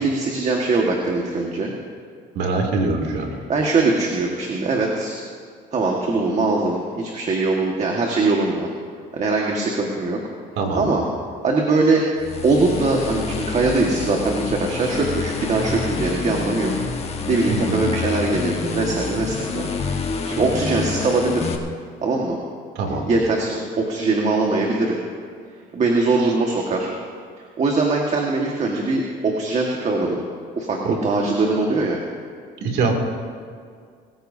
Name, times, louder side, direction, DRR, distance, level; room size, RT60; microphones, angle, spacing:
voice 1, 0.0-1.7 3.5-5.2 5.7-8.7 9.1-10.2 10.8-11.0 11.4-12.0 12.4-16.7 17.3-19.7 20.3-21.5 22.0-22.4 22.9-25.0 25.7-26.9 27.6-30.2 30.6-32.0, right 3 dB, 40° right, 0 dB, 1.7 m, -21 dB
voice 2, 2.4-3.3 10.6-10.9 17.5-17.9 22.7-23.0 30.8-31.0 32.6-32.9, right 3 dB, 75° right, 2 dB, 2.6 m, -23 dB
sound 1, 12.2-21.6, left 4 dB, 35° left, 1.4 m, -28 dB
22.5 x 14.5 x 2.8 m, 2.1 s
cardioid pair, 110°, 17 cm